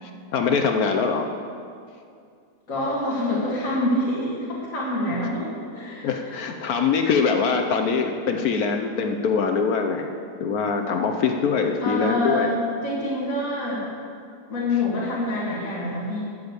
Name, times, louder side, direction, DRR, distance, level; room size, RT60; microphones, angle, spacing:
voice 1, 0.0-1.3 6.0-10.1 10.4-12.6, left 5 dB, 70° left, 4 dB, 1.2 m, -23 dB
voice 2, 2.7-6.3 11.8-13.9 14.5-16.2, left 1 dB, 55° left, -7 dB, 2.6 m, -26 dB
13.0 x 7.1 x 8.1 m, 2.3 s
omnidirectional pair, 1.7 m